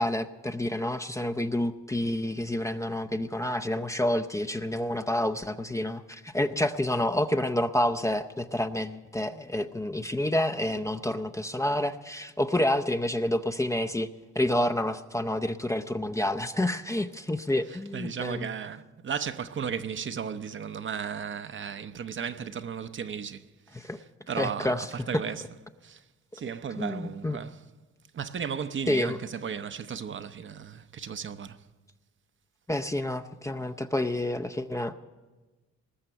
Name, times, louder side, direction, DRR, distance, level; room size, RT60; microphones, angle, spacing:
voice 1, 0.0-14.1 14.3-18.5 23.7-24.0 24.4-24.9 26.8-27.4 28.9-29.2 32.7-34.9, left 1 dB, 10° left, 0.6 m, -28 dB
voice 2, 17.7-26.0 26.3-27.6 28.1-31.6, right 7 dB, 40° right, 0.7 m, -35 dB
20.0 x 6.7 x 9.9 m
cardioid pair, 90°, 30 cm